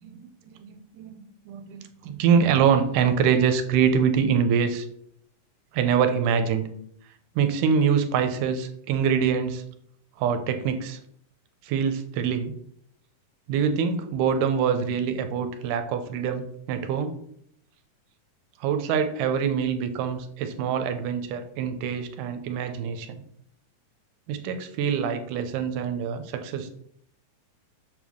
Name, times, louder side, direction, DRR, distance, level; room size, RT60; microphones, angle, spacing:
voice 1, 0.0-4.9 5.7-6.7 7.4-9.6 10.2-11.0 11.6-12.5 13.5-17.2 18.6-23.2 24.3-26.7, right 7 dB, 80° right, 8 dB, 2.1 m, -25 dB
6.9 x 3.5 x 6.1 m, 0.70 s
omnidirectional pair, 3.8 m